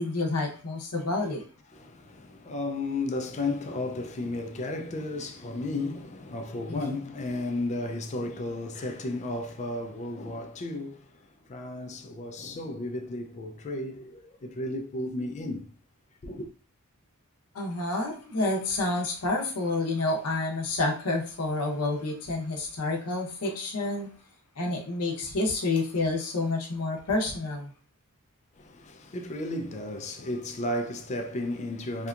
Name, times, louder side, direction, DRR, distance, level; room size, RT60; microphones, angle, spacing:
voice 1, 0.0-1.4 6.7-6.9 17.5-24.1 24.6-27.7, left 2 dB, 80° left, 0.7 m, -29 dB
voice 2, 1.7-11.2 11.4-15.7 16.2-16.5 28.6-32.1, left 2 dB, 30° left, 0.4 m, -33 dB
2.8 x 2.2 x 2.4 m
head